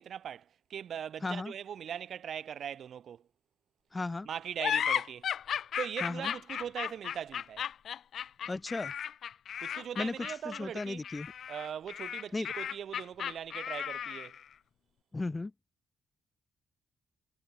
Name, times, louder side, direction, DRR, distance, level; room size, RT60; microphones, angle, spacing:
voice 1, 0.0-3.3 4.2-5.3 5.8-7.7 9.6-11.1 11.5-14.4, right 9 dB, 60° right, 6.1 m, -40 dB
voice 2, 1.2-1.5 3.9-4.3 6.0-6.3 8.5-8.9 10.0-11.3 12.3-12.5 15.1-15.5, left 3 dB, 20° left, 0.8 m, -35 dB
sound 1, 4.6-14.4, left 9 dB, 60° left, 0.7 m, -35 dB
cardioid pair, 90°, 0 cm